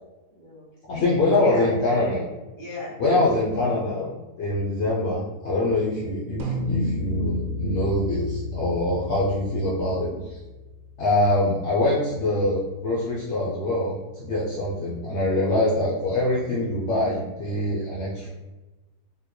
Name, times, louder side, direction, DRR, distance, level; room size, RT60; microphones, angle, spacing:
voice 1, 0.3-2.2 2.6-3.0, equal, 35° left, -4 dB, 1.0 m, -35 dB
voice 2, 0.9-2.2 3.0-10.4 11.0-18.3, left 2 dB, 70° left, -6 dB, 0.7 m, -24 dB
sound 1, 6.4-11.0, left 2 dB, 70° right, 0.9 m, -31 dB
3.6 x 2.9 x 2.2 m, 1.1 s
omnidirectional pair, 1.7 m